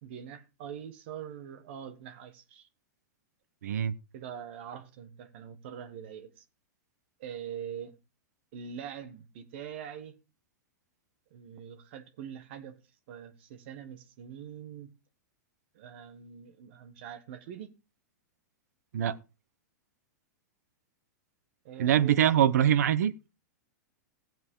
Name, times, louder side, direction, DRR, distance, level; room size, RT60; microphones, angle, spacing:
voice 1, 0.0-2.7 4.1-6.4 7.2-8.0 8.5-10.2 11.3-12.8 13.1-14.9 15.7-17.7 21.6-22.2, right 8 dB, 40° right, 1.5 m, -43 dB
voice 2, 3.6-3.9 18.9-19.1 21.8-23.1, right 10 dB, 65° right, 1.0 m, -23 dB
18.0 x 7.6 x 3.8 m
supercardioid pair, 180°, 10 cm